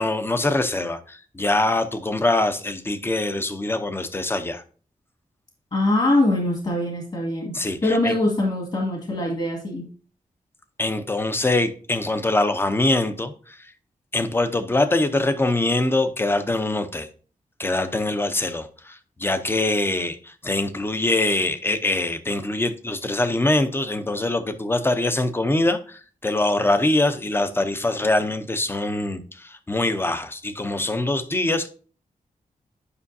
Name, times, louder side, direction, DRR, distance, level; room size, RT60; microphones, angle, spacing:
voice 1, 0.0-4.6 7.5-8.1 10.8-13.7 14.1-17.1 17.6-31.7, left 2 dB, 15° left, 0.6 m, -23 dB
voice 2, 5.7-7.5 7.8-9.9, left 1 dB, 40° left, 1.9 m, -22 dB
9.7 x 5.5 x 2.7 m
wide cardioid pair, 165°, 14 cm